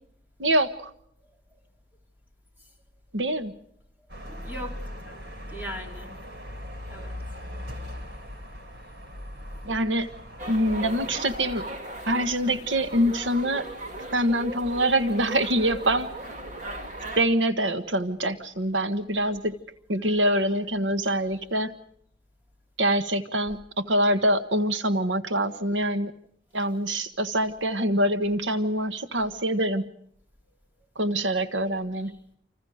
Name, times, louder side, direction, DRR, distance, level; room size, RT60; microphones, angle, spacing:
voice 1, 0.4-0.9 3.1-3.5 9.6-10.1 10.5-11.6 12.0-13.7 14.1-16.1 17.2-19.6 19.9-21.7 22.8-26.1 26.5-29.9 30.9-32.1, right 1 dB, 90° right, 9 dB, 1.5 m, -25 dB
sound 1, 4.1-11.2, left 1 dB, 60° right, 3.5 m, -39 dB
voice 2, 4.3-5.2 5.5-6.2 6.9-7.2 16.7-16.8 20.0-20.2 21.3-21.5 32.0-32.1, equal, 10° right, 1 dB, 3.8 m, -40 dB
sound 2, 10.4-17.2, right 1 dB, 40° right, 2.9 m, -37 dB
29.0 x 27.0 x 5.0 m, 0.68 s
head